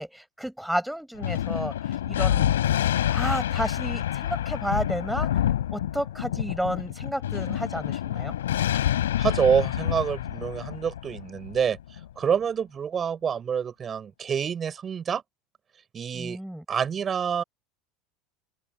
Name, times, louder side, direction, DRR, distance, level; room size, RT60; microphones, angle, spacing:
voice 1, 0.0-2.5 3.1-5.3 5.7-8.3 16.1-16.6, equal, ahead, 5.9 m, -31 dB
Thunder, 1.2-12.1, left 11 dB, 80° left, 6.6 m, -27 dB
voice 2, 9.2-11.8 12.2-15.2 15.9-16.4 16.7-17.4, right 7 dB, 35° right, 7.8 m, -27 dB
open air
hypercardioid pair, 80°, 0 cm